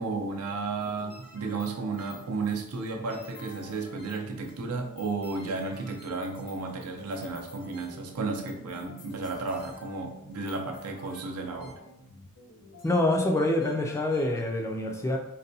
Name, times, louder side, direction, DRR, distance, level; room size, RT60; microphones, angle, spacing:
voice 1, 0.0-11.8, right 3 dB, 85° right, 3 dB, 0.6 m, -33 dB
sound 1, 0.8-14.4, left 2 dB, 70° left, 0.9 m, -51 dB
voice 2, 12.8-15.2, left 1 dB, 10° left, 2 dB, 0.3 m, -26 dB
4.0 x 2.2 x 2.6 m, 0.84 s
head